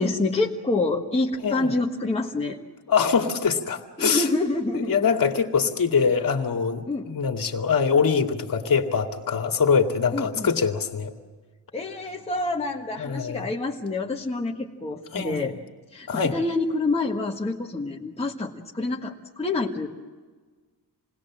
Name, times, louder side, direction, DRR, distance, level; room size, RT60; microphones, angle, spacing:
voice 1, 0.0-2.6 4.0-5.0 6.9-7.1 10.1-10.5 11.7-15.5 15.9-19.9, left 2 dB, 15° left, -3 dB, 1.5 m, -27 dB
voice 2, 2.9-4.3 4.7-11.1 13.0-13.5 15.1-15.5 16.1-16.3, left 6 dB, 55° left, 3 dB, 2.4 m, -23 dB
28.0 x 20.5 x 7.5 m, 1.4 s
wide cardioid pair, 175°, 41 cm